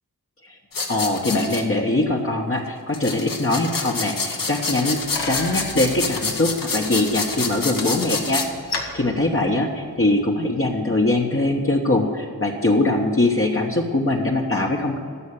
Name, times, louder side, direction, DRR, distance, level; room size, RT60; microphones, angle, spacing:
sound 1, 0.7-1.6 2.9-8.5, left 4 dB, 60° left, 1.3 m, -28 dB
voice 1, 0.9-5.0 5.2-8.4 8.9-15.0, left 2 dB, 35° left, -1 dB, 1.2 m, -22 dB
Bicycle, 4.5-10.2, left 3 dB, 90° left, 1.5 m, -36 dB
11.5 x 6.5 x 8.8 m, 2.2 s
cardioid pair, 55°, 38 cm